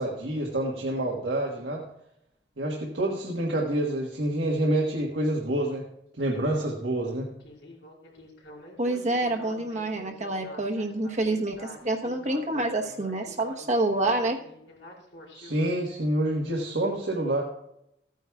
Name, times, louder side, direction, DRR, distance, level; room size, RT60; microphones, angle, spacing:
voice 1, 0.0-1.8 2.6-5.8 6.2-7.3 15.3-17.4, right 1 dB, 80° right, -1 dB, 1.4 m, -27 dB
Speech synthesizer, 7.4-15.7, left 1 dB, 85° left, 3.9 m, -47 dB
voice 2, 8.8-14.4, right 2 dB, 40° right, 3 dB, 1.1 m, -27 dB
15.0 x 9.2 x 2.3 m, 0.78 s
head